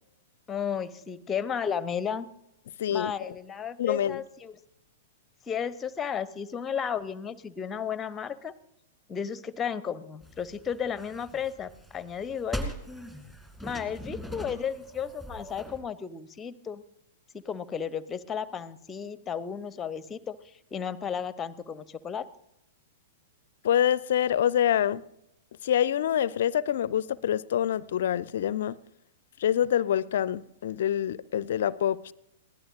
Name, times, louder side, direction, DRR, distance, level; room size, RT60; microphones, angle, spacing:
voice 1, 0.5-2.3 2.9-4.6 5.5-8.5 9.1-12.7 13.6-16.8 17.3-22.3, left 7 dB, 15° left, 18 dB, 0.7 m, -33 dB
voice 2, 2.8-3.3 3.8-4.2 23.6-25.0 25.6-28.8 29.4-32.1, left 10 dB, 55° left, 21 dB, 0.4 m, -26 dB
sound 1, 10.2-15.8, equal, 5° right, 2.3 m, -41 dB
22.0 x 16.0 x 2.5 m, 0.82 s
figure-of-eight pair, 105°, 0 cm